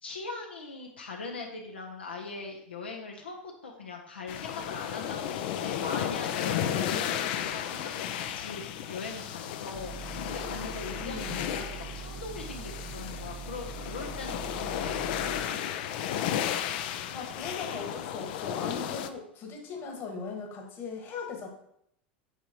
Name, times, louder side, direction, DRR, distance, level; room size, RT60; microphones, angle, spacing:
voice 1, 0.0-8.6 8.9-14.5 14.7-15.6, left 4 dB, 85° left, 0 dB, 0.8 m, -41 dB
sound 1, 4.3-19.1, left 10 dB, 60° left, 0.5 m, -34 dB
sound 2, 9.7-15.4, right 7 dB, 40° right, 0.5 m, -43 dB
voice 2, 11.0-11.4 17.1-21.5, left 4 dB, 45° left, 3 dB, 1.5 m, -39 dB
6.8 x 5.9 x 2.9 m, 0.73 s
hypercardioid pair, 85°, 6 cm